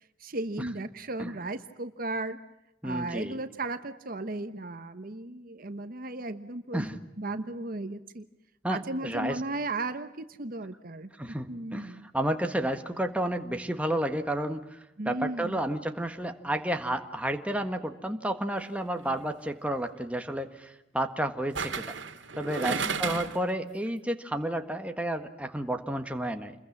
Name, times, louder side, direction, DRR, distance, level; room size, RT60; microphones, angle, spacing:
voice 1, 0.2-2.4 2.8-6.9 7.2-8.2 8.7-11.1 11.5-12.1 15.0-15.6 22.6-22.9, right 2 dB, 50° right, 10 dB, 1.1 m, -35 dB
voice 2, 2.8-3.4 6.7-7.0 8.6-9.4 11.2-21.9 22.3-26.5, right 1 dB, 5° right, 5 dB, 1.5 m, -31 dB
sound 1, 18.9-19.2 21.5-23.5 23.9-24.0, right 5 dB, 75° right, 2.1 m, -33 dB
28.5 x 22.0 x 7.3 m, 0.91 s
head